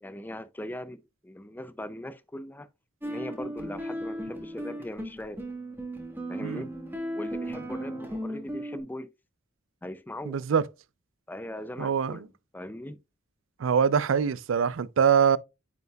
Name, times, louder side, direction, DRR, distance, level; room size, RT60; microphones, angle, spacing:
voice 1, 0.0-2.7 3.0-5.4 6.3-6.7 7.2-9.1 9.8-10.4 11.3-12.3 12.5-13.0, left 1 dB, 10° left, 0.4 m, -40 dB
sound 1, 3.0-8.8, right 1 dB, 10° right, 1.4 m, -36 dB
voice 2, 10.3-10.6 11.8-12.2 13.6-15.4, right 7 dB, 75° right, 0.4 m, -23 dB
9.3 x 5.3 x 2.3 m
head